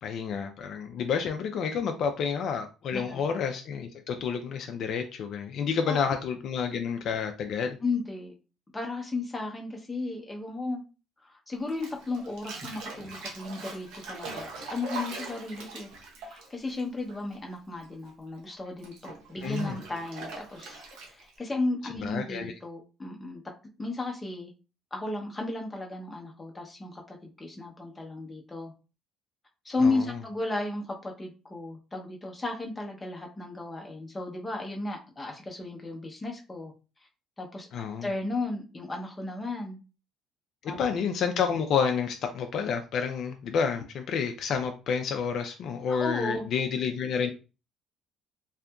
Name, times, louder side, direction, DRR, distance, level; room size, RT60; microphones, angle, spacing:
voice 1, 0.0-7.8 19.4-19.8 22.0-22.5 29.8-30.2 37.7-38.1 40.6-47.3, left 6 dB, 55° left, 6 dB, 0.3 m, -29 dB
voice 2, 2.9-3.2 5.9-6.0 7.8-8.3 8.7-10.8 11.2-15.9 16.3-20.8 21.1-23.4 23.8-24.5 24.9-28.7 29.6-36.7 37.4-37.7 38.0-39.8 40.7-40.8 45.9-46.5, left 2 dB, 15° left, 1 dB, 0.6 m, -34 dB
Bathtub (filling or washing), 11.7-17.5 17.8-21.4, right 3 dB, 85° right, 0.7 m, -41 dB
2.7 x 2.5 x 2.2 m, 0.32 s
cardioid pair, 135°, 0 cm